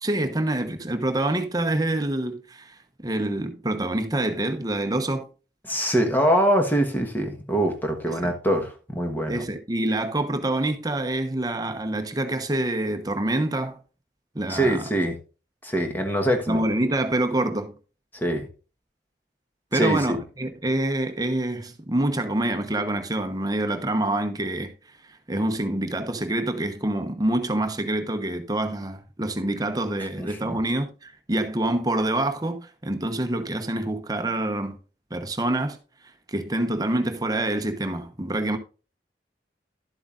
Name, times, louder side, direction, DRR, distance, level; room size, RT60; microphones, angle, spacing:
voice 1, 0.0-5.3 8.2-8.3 9.3-13.8 14.3-14.8 16.5-17.7 19.7-24.7 25.3-34.8 35.1-35.8 36.3-38.6, right 1 dB, 20° right, 1.0 m, -26 dB
voice 2, 5.6-9.4 14.5-15.2 15.6-16.7 18.1-18.5 19.7-20.2 30.2-30.6, right 1 dB, 10° left, 1.3 m, -24 dB
12.0 x 7.8 x 2.5 m
head